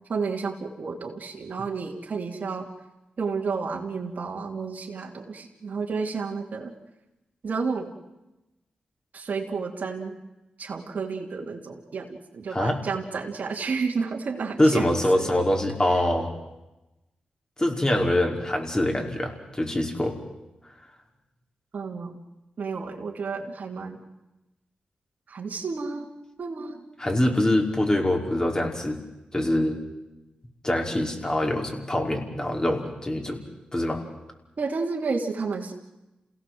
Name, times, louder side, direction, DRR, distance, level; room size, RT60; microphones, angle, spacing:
voice 1, 0.1-2.7 3.2-6.7 7.4-7.9 9.1-10.1 10.6-14.9 15.1-15.3 21.7-22.1 22.6-24.0 25.3-26.1 26.4-26.8 34.6-35.7, right 4 dB, 65° right, 0 dB, 3.0 m, -31 dB
voice 2, 12.5-12.8 14.6-16.3 17.6-20.2 27.0-29.0 29.3-29.8 30.6-33.4 33.7-34.0, left 1 dB, 25° left, 2 dB, 5.4 m, -24 dB
28.0 x 17.5 x 7.9 m, 0.99 s
cardioid pair, 45°, 3 cm